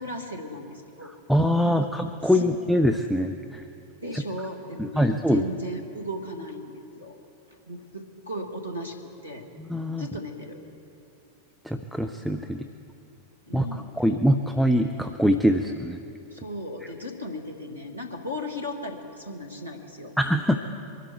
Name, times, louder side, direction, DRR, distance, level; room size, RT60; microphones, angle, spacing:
voice 1, 0.0-1.1 1.6-1.9 2.2-2.5 4.0-7.2 7.7-9.0 9.2-9.5 10.0-10.6 13.5-14.0 16.3-20.1, equal, 90° right, 2 dB, 1.4 m, -36 dB
voice 2, 1.3-3.6 4.1-4.2 4.8-5.4 9.7-10.1 11.6-12.6 13.5-13.7 14.0-16.0 20.2-20.6, equal, ahead, 6 dB, 0.6 m, -23 dB
23.0 x 12.5 x 4.5 m, 2.6 s
figure-of-eight pair, 90°, 0 cm